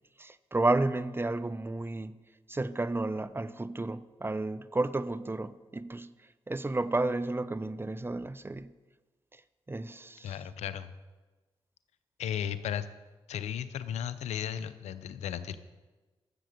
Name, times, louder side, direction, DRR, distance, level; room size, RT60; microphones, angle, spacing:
voice 1, 0.2-2.2 2.5-6.1 6.5-8.7 9.3-9.4 9.7-10.3, right 2 dB, 20° right, 0.7 m, -32 dB
voice 2, 10.2-10.9 12.2-12.9 13.3-15.5, left 9 dB, 85° left, 0.6 m, -35 dB
11.5 x 7.6 x 6.7 m
supercardioid pair, 40°, 11 cm